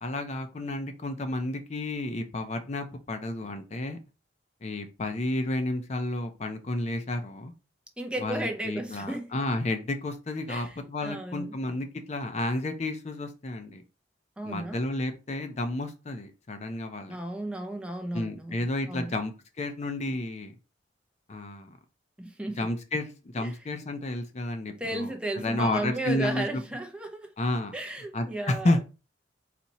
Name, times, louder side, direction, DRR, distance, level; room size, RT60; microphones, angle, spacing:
voice 1, 0.0-4.0 4.6-7.5 8.2-13.8 14.4-17.2 18.1-20.5 21.3-21.8 22.6-26.6 27.4-27.7 28.1-28.8, left 1 dB, 35° left, 0.5 m, -31 dB
voice 2, 8.0-9.3 10.5-11.5 14.4-14.8 17.1-19.1 22.2-22.7 23.4-23.5 24.8-27.3 27.7-28.7, right 1 dB, 5° right, 0.6 m, -34 dB
4.2 x 2.8 x 4.1 m
head